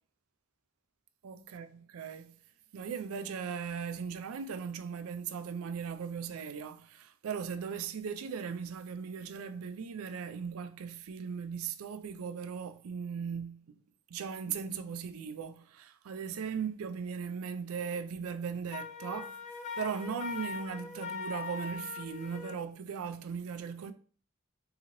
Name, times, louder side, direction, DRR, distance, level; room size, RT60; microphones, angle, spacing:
voice 1, 1.2-2.4 2.7-13.8 14.1-19.4 19.8-23.9, right 6 dB, 75° right, 0.4 m, -38 dB
Wind instrument woodwind instrument, 18.7-22.6, left 5 dB, 35° left, 0.3 m, -41 dB
3.8 x 2.8 x 2.9 m
head